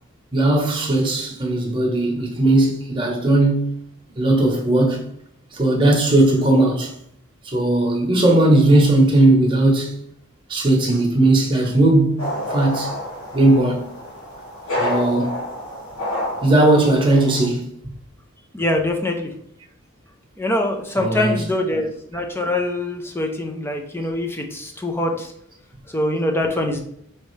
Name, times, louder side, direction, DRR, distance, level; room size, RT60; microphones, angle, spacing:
voice 1, 0.3-3.8 4.2-5.0 5.5-6.9 7.4-10.0 10.5-13.0 13.3-13.8 14.8-15.4 16.4-17.7 20.9-21.5, right 2 dB, 25° right, 1.1 m, -17 dB
sound 1, 12.2-17.4, left 1 dB, 90° left, 1.8 m, -29 dB
voice 2, 18.5-19.3 20.4-25.3 25.9-26.8, left 1 dB, 10° left, 0.5 m, -23 dB
5.1 x 3.3 x 3.2 m
head